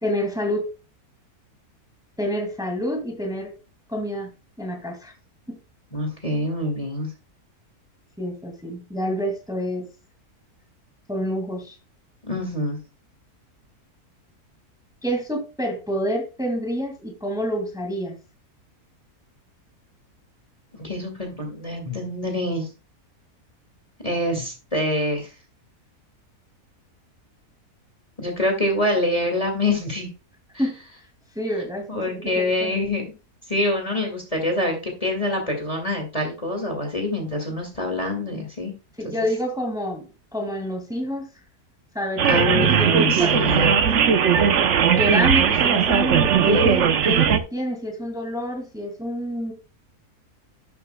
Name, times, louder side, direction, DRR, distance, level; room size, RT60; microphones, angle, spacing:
voice 1, 0.0-0.7 2.2-3.5 3.9-4.3 4.6-5.1 5.5-5.6 8.2-9.9 11.1-11.8 15.0-18.1 30.6-30.8 31.4-32.7 39.0-40.1 40.3-41.3 41.9-42.5 42.8-44.4 44.9-49.5, equal, ahead, 3 dB, 2.1 m, -28 dB
voice 2, 5.9-7.1 12.2-12.8 20.8-22.7 24.0-25.3 28.2-30.1 31.9-33.1 33.5-38.7 42.3-43.8, left 1 dB, 25° left, 2 dB, 2.1 m, -25 dB
sound 1, 42.2-47.4, right 7 dB, 55° right, 1.0 m, -18 dB
12.0 x 8.2 x 2.2 m, 0.30 s
omnidirectional pair, 1.6 m